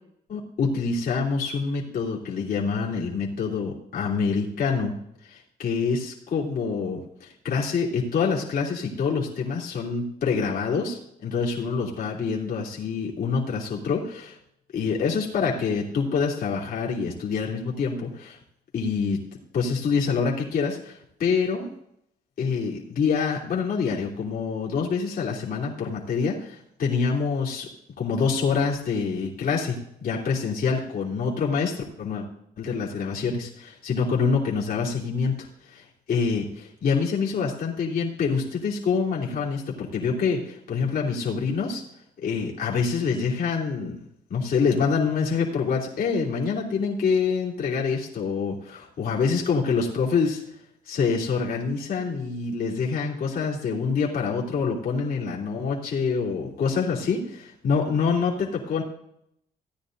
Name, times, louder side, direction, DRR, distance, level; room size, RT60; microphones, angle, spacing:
voice 1, 0.3-4.9 5.2-14.4 14.7-18.4 18.7-19.2 19.5-21.7 22.4-27.7 28.0-32.3 32.6-41.8 42.2-44.0 44.3-50.4 50.9-58.8, left 5 dB, 55° left, -4 dB, 3.1 m, -26 dB
16.0 x 9.8 x 2.6 m, 0.74 s
cardioid pair, 95°, 17 cm